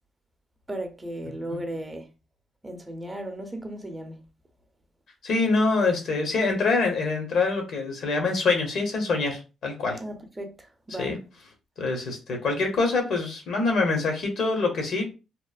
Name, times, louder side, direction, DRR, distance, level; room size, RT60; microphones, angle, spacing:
voice 1, 0.7-2.1 2.6-4.2 10.0-11.1, right 1 dB, 15° right, 0.5 m, -36 dB
voice 2, 5.2-10.0 11.0-11.2 11.8-15.1, left 3 dB, 65° left, 0.8 m, -25 dB
2.9 x 2.0 x 2.4 m
cardioid pair, 90°, 0 cm